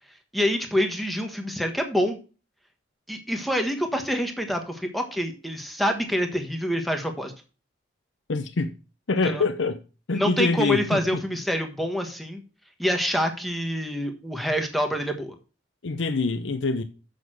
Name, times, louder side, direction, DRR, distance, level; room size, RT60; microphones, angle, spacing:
voice 1, 0.3-2.2 3.1-7.3 9.2-9.4 10.1-12.4 12.8-15.3, equal, ahead, 1.3 m, -26 dB
voice 2, 8.3-8.7 9.1-9.8 10.1-11.2 15.8-16.8, left 3 dB, 80° left, 0.7 m, -25 dB
7.3 x 6.5 x 6.2 m
head